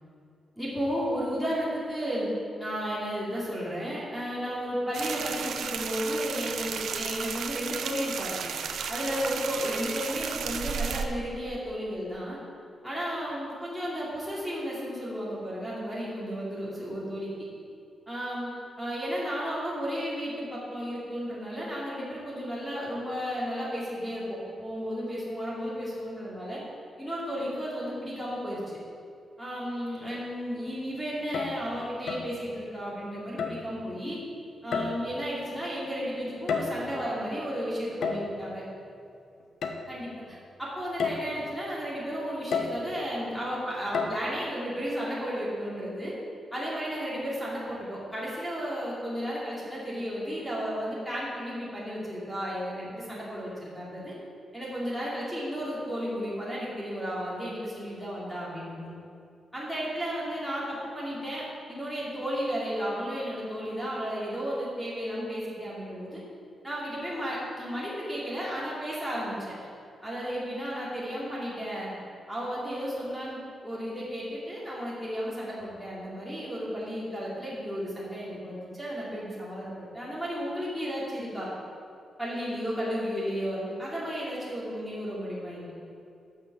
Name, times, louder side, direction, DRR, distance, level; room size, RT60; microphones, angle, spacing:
voice 1, 0.6-2.3 2.6-8.4 8.9-12.4 12.8-17.3 18.1-18.5 18.8-26.6 27.0-28.6 29.4-34.2 34.6-38.6 39.9-46.1 46.5-54.1 54.5-58.9 59.5-66.2 66.6-69.5 70.0-72.0 72.3-81.5 82.2-85.7, equal, ahead, -7 dB, 2.7 m, -33 dB
sound 1, 4.9-11.0, right 6 dB, 85° right, 0.7 m, -34 dB
sound 2, 31.2-31.7 32.1-32.4 33.4-33.7 34.7-35.2 36.3-37.0 38.0-38.4 39.6-39.8 40.3-40.4 41.0-41.3 42.5-42.9 43.9-44.2, left 5 dB, 80° left, 1.1 m, -31 dB
12.0 x 6.6 x 7.3 m, 2.5 s
wide cardioid pair, 170°, 0 cm